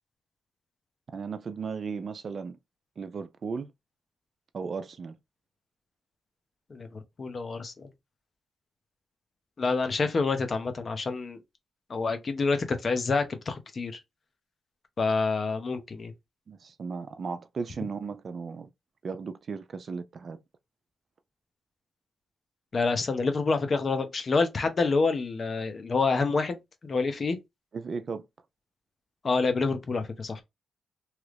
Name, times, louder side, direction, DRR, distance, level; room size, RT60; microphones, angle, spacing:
voice 1, 1.1-2.6 3.0-3.7 4.5-5.2 16.5-18.7 19.0-20.4 27.7-28.2, right 5 dB, 50° right, 0.3 m, -36 dB
voice 2, 6.7-7.9 9.6-11.4 11.9-14.0 15.0-16.1 22.7-27.4 29.2-30.4, left 4 dB, 40° left, 0.7 m, -27 dB
3.0 x 2.4 x 3.2 m
cardioid pair, 105°, 0 cm